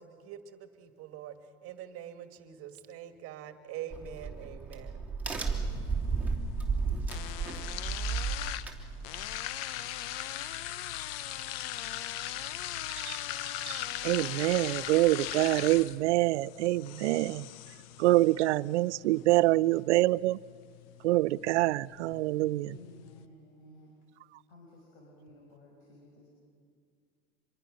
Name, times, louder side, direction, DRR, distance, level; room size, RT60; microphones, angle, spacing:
voice 1, 0.0-1.3 1.6-5.0, right 10 dB, 40° right, 1.8 m, -44 dB
Crack, 3.9-9.4, right 4 dB, 5° right, 2.9 m, -33 dB
sound 1, 5.2-23.2, left 13 dB, 60° left, 1.0 m, -40 dB
voice 2, 13.7-17.5 18.0-20.4 21.0-22.8, right 18 dB, 80° right, 0.6 m, -26 dB
voice 3, 22.6-24.0 24.5-26.3, left 1 dB, 75° left, 6.1 m, -54 dB
26.0 x 22.5 x 6.4 m
supercardioid pair, 125°, 34 cm